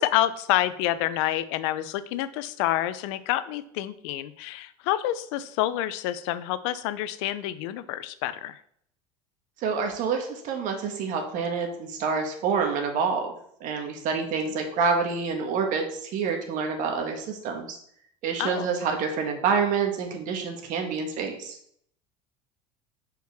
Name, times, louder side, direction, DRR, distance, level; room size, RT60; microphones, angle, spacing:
voice 1, 0.0-8.6 18.4-18.7, left 13 dB, 75° left, 14 dB, 0.5 m, -28 dB
voice 2, 9.6-13.3 13.6-17.8 18.2-21.6, right 5 dB, 55° right, 4 dB, 1.4 m, -27 dB
6.1 x 4.6 x 3.5 m, 0.66 s
supercardioid pair, 110°, 16 cm